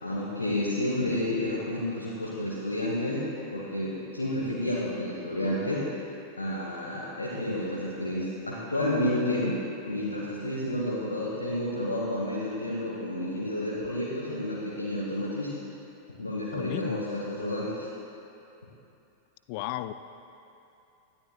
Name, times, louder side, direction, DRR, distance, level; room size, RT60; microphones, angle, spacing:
voice 1, 0.0-3.3 3.5-5.8 6.4-9.5 9.9-15.5 16.1-17.9, left 1 dB, 75° left, -5 dB, 1.6 m, -30 dB
voice 2, 16.5-17.0 19.5-19.9, left 14 dB, 45° left, 12 dB, 0.4 m, -34 dB
19.0 x 12.5 x 2.4 m, 2.8 s
figure-of-eight pair, 90°, 0 cm